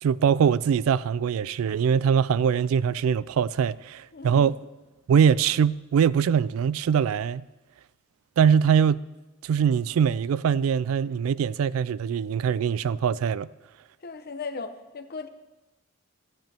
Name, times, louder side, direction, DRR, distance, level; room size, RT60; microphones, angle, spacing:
voice 1, 0.0-4.5 5.1-7.4 8.4-9.0 9.4-13.5, right 7 dB, 85° right, 0.3 m, -22 dB
voice 2, 4.1-4.5 14.0-15.3, left 4 dB, 50° left, 0.7 m, -37 dB
15.5 x 9.0 x 3.4 m
head